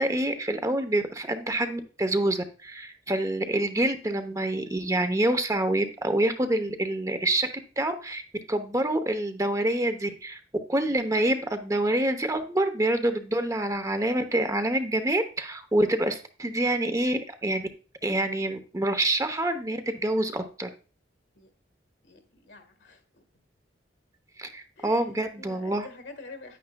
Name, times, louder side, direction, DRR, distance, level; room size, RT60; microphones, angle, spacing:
voice 1, 0.0-7.5 7.8-8.2 8.5-10.4 10.7-17.7 18.0-20.7 24.4-25.9, right 1 dB, 20° right, 9 dB, 0.8 m, -26 dB
voice 2, 22.0-23.2 24.8-25.0 25.4-26.6, left 3 dB, 75° left, 7 dB, 1.6 m, -46 dB
10.0 x 9.2 x 2.3 m, 0.37 s
head